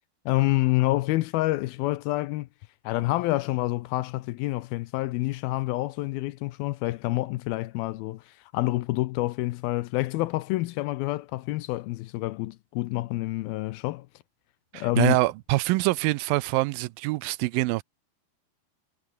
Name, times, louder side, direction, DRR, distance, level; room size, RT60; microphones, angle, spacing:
voice 1, 0.3-2.5 2.8-14.1 14.7-15.2, left 18 dB, 80° left, 2.4 m, -27 dB
voice 2, 14.7-17.8, right 20 dB, 80° right, 2.1 m, -25 dB
omnidirectional pair, 4.6 m